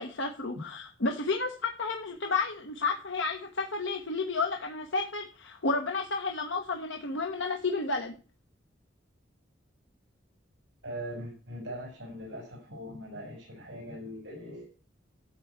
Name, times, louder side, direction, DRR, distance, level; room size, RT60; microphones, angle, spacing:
voice 1, 0.0-8.2, left 3 dB, 85° left, 3 dB, 1.2 m, -31 dB
voice 2, 10.8-14.7, equal, 70° right, -1 dB, 5.1 m, -41 dB
12.5 x 4.7 x 8.2 m, 0.38 s
head